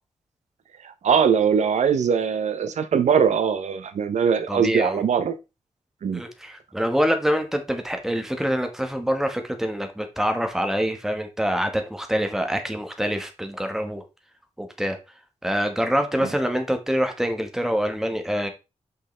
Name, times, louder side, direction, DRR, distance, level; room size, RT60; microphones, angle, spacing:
voice 1, 0.8-5.3 6.0-6.2, right 7 dB, 75° right, 0.7 m, -21 dB
voice 2, 4.5-5.0 6.1-14.0 14.6-15.0 15.4-18.5, equal, 5° right, 1.2 m, -25 dB
6.6 x 5.6 x 3.2 m
wide cardioid pair, 120°, 12 cm